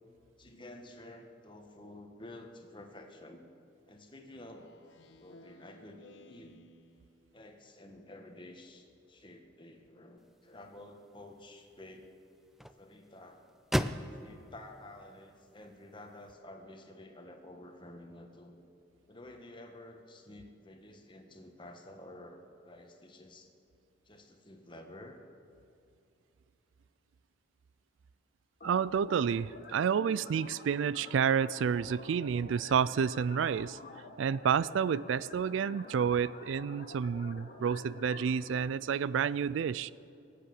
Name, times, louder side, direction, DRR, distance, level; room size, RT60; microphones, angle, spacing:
voice 1, 0.4-3.5 3.9-4.7 5.2-6.6 7.3-12.1 12.7-13.4 14.1-18.6 19.1-23.5 24.0-25.2, left 1 dB, 25° left, 4 dB, 1.5 m, -51 dB
Speech synthesizer, 4.3-7.4, left 1 dB, 70° left, 1.1 m, -58 dB
sound 1, 10.2-16.3, equal, ahead, 0.4 m, -40 dB
sound 2, 28.6-38.6, left 2 dB, 50° left, 1.6 m, -49 dB
voice 2, 28.6-33.8 34.2-39.9, right 7 dB, 75° right, 19 dB, 0.3 m, -30 dB
23.5 x 8.5 x 7.1 m, 2.6 s
head